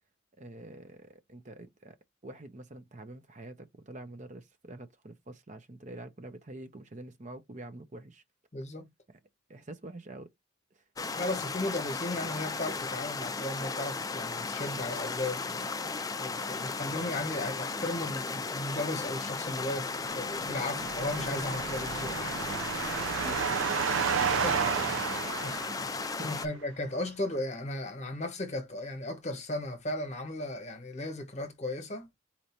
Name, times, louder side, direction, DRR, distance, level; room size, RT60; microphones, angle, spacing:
voice 1, 0.4-2.0 2.2-8.2 9.5-10.3 10.7-10.8 20.7-20.8 23.2-23.8 24.2-25.0 26.0-26.4, right 2 dB, 35° right, 0.7 m, -46 dB
voice 2, 8.5-8.9 11.1-15.7 16.2-22.4 24.3-24.6 25.4-32.1, left 1 dB, 35° left, 1.1 m, -36 dB
sound 1, 11.0-26.5, left 4 dB, 20° left, 0.4 m, -35 dB
sound 2, 20.0-26.3, right 7 dB, 75° right, 0.4 m, -32 dB
4.4 x 2.6 x 4.4 m
head